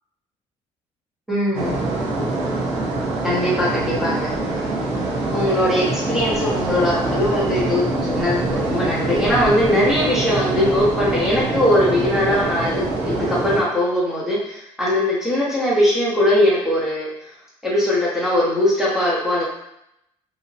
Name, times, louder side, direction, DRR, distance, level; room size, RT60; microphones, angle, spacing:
voice 1, 1.3-1.8 3.2-4.6 5.3-17.1 17.6-19.4, left 1 dB, 5° right, -7 dB, 0.6 m, -20 dB
sound 1, 1.5-13.6, right 2 dB, 85° right, 0.7 m, -24 dB
2.7 x 2.0 x 2.6 m, 0.79 s
cardioid pair, 175°, 11 cm